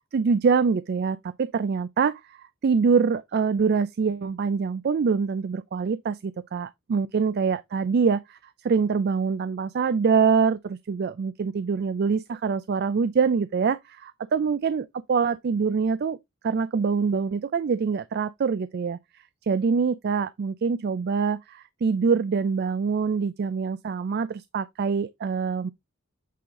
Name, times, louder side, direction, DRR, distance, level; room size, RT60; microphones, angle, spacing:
voice 1, 0.1-8.4 8.6-16.2 16.4-19.0 19.4-25.7, right 5 dB, 45° right, 0.3 m, -24 dB
8.4 x 3.9 x 3.6 m
head